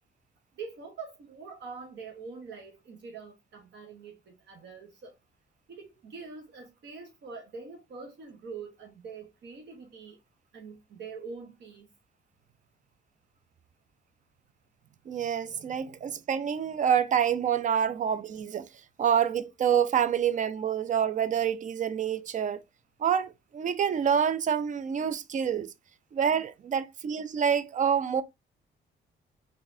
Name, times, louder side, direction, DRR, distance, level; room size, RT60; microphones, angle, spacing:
voice 1, 0.6-5.1 5.7-10.2 10.5-11.9 17.9-18.0, right 5 dB, 60° right, 0.9 m, -44 dB
voice 2, 15.1-18.7 19.0-22.6 23.0-25.7 26.1-28.2, right 8 dB, 40° right, 0.4 m, -27 dB
3.9 x 2.6 x 2.6 m
cardioid pair, 90°, 20 cm